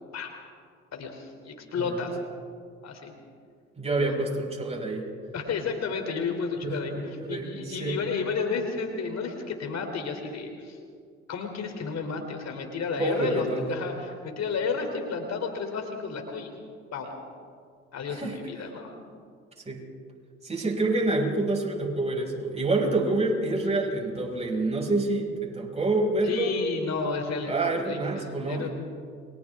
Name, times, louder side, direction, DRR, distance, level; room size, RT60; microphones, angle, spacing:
voice 1, 0.9-2.2 2.8-3.1 3.9-4.1 5.3-10.8 11.3-16.5 16.9-17.2 17.9-18.9 26.2-28.7, left 5 dB, 50° left, 4 dB, 3.3 m, -32 dB
voice 2, 3.8-5.1 6.6-8.0 13.0-13.7 18.1-18.4 19.7-19.8 20.4-26.5 27.4-28.7, right 2 dB, 20° right, -1 dB, 6.2 m, -27 dB
30.0 x 23.5 x 3.7 m, 2.1 s
hypercardioid pair, 50°, 33 cm